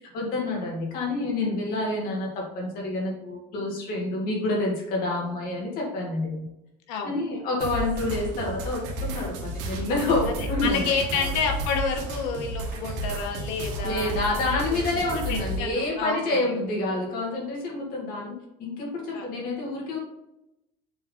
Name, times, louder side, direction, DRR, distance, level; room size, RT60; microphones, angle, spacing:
voice 1, 0.1-6.5 7.0-11.2 13.8-18.3 18.6-20.0, left 2 dB, 55° left, -2 dB, 2.0 m, -28 dB
voice 2, 6.9-7.2 10.4-14.4 14.7-14.8 15.3-16.5 19.1-19.3, left 5 dB, 85° left, 3 dB, 1.3 m, -30 dB
sound 1, 7.6-15.6, right 1 dB, 80° right, 1.5 m, -32 dB
7.0 x 3.5 x 3.8 m, 0.88 s
cardioid pair, 160°, 19 cm